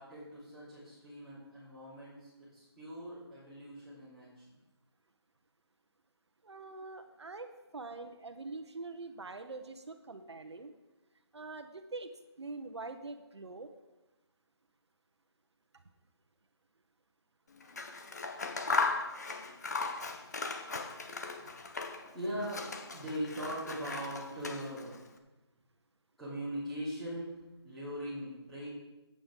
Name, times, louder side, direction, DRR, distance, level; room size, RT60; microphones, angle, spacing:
voice 1, 0.0-4.6 21.4-21.5 22.1-25.0 26.2-27.3 27.6-28.7, equal, ahead, -14 dB, 3.0 m, -41 dB
voice 2, 6.4-7.5 7.7-10.7 11.3-12.1 12.4-13.7, right 3 dB, 80° right, 7 dB, 1.1 m, -44 dB
Scissors, 17.6-22.1 22.4-25.0, left 4 dB, 40° left, 0.9 m, -37 dB
15.5 x 8.8 x 3.8 m, 1.1 s
hypercardioid pair, 175°, 14 cm